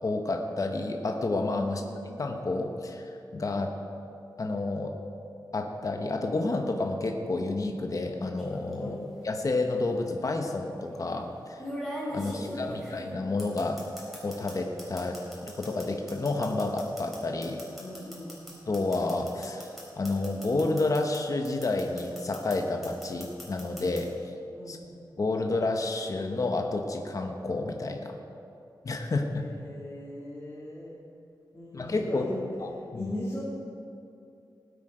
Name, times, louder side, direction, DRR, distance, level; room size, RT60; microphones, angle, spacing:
voice 1, 0.0-1.8 2.2-3.7 4.4-5.0 5.5-9.0 9.2-11.6 12.1-13.8 14.2-15.2 15.6-17.6 18.7-19.7 20.0-24.1 24.7-24.8 25.2-28.2 28.8-29.4 31.7-32.2 32.6-33.1, left 2 dB, 45° left, 3 dB, 1.1 m, -30 dB
voice 2, 1.6-1.9 8.7-9.1 12.1-12.8 17.7-18.3 24.5-24.8 29.3-31.0 31.5-32.5 32.9-33.4, left 1 dB, 25° left, -9 dB, 2.9 m, -40 dB
sound 1, 8.4-8.7 9.9-10.0 11.6-14.5 14.8-21.2 21.4-22.6 22.8-24.0, equal, ahead, 3.9 m, -39 dB
19.5 x 8.3 x 5.0 m, 2.6 s
wide cardioid pair, 120°, 8 cm